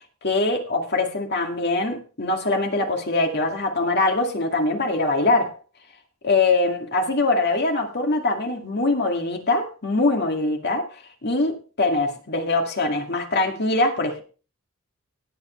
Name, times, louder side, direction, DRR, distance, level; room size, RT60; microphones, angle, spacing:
voice 1, 0.2-5.5 6.2-14.2, left 2 dB, 50° left, 4 dB, 2.2 m, -23 dB
18.0 x 8.2 x 3.2 m, 0.35 s
head